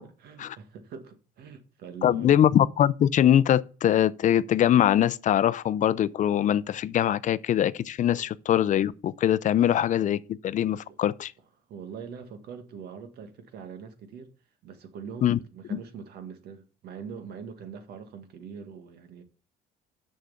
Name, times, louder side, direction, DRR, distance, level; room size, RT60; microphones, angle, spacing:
voice 1, 0.2-2.4 8.1-8.2 9.6-9.7 10.9-11.0 11.7-14.3 14.6-19.2, right 6 dB, 70° right, 1.7 m, -43 dB
voice 2, 2.0-11.3 15.2-15.4 15.7-15.8, left 10 dB, 50° left, 0.5 m, -23 dB
6.7 x 6.4 x 7.0 m
cardioid pair, 110°, 17 cm